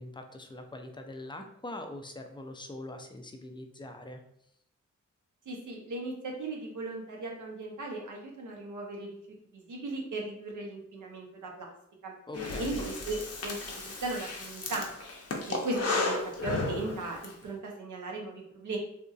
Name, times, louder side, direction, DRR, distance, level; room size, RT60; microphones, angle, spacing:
voice 1, 0.0-4.2 12.3-12.8, left 1 dB, 15° left, 5 dB, 0.4 m, -43 dB
voice 2, 5.5-9.2 9.5-11.7 12.0-12.1 12.6-14.9 15.5-18.8, right 2 dB, 70° right, 0 dB, 0.8 m, -37 dB
Breathing, 12.3-17.3, left 3 dB, 50° left, 0.7 m, -34 dB
2.8 x 2.6 x 2.4 m, 0.72 s
cardioid pair, 50°, 31 cm